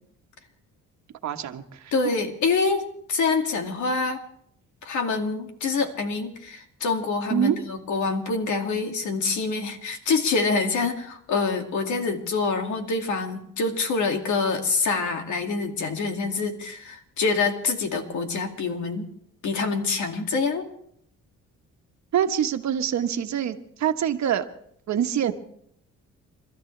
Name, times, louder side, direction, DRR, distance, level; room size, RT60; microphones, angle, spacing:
voice 1, 1.2-1.8 7.3-7.6 22.1-24.4 24.9-25.3, right 9 dB, 65° right, 7 dB, 1.3 m, -25 dB
voice 2, 1.9-2.8 3.1-4.2 4.8-19.1 19.4-20.7, left 4 dB, 75° left, 4 dB, 2.3 m, -26 dB
29.5 x 13.0 x 3.3 m, 0.67 s
cardioid pair, 90°, 30 cm